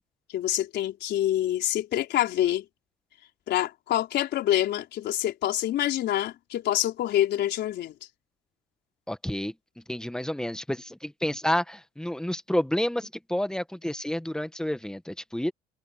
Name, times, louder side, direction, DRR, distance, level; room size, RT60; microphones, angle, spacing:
voice 1, 0.3-2.7 3.5-7.9, left 12 dB, 65° left, 4.5 m, -26 dB
voice 2, 9.1-9.5 9.9-15.5, left 1 dB, 5° left, 1.6 m, -29 dB
supercardioid pair, 95°, 19 cm